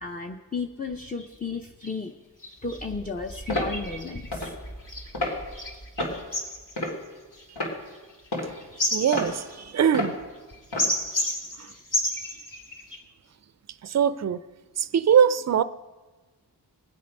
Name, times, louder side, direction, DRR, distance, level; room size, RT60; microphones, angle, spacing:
voice 1, 0.0-2.1 2.6-4.5, left 4 dB, 20° left, 0.7 m, -34 dB
sound 1, 0.9-1.0 1.2-1.3 1.8-2.0 2.4-13.0, left 1 dB, 50° left, 2.1 m, -33 dB
sound 2, 3.5-3.7 4.3-4.5 5.1-5.4 6.0-6.2 6.8-7.1 7.6-7.7 8.3-8.5 9.1-9.3 9.9-10.1 10.7-10.9, left 1 dB, 70° left, 3.2 m, -29 dB
voice 2, 8.9-10.2 11.6-11.7 13.8-14.4 14.8-15.6, right 8 dB, 40° right, 0.5 m, -22 dB
19.5 x 7.6 x 5.4 m
wide cardioid pair, 65°, 41 cm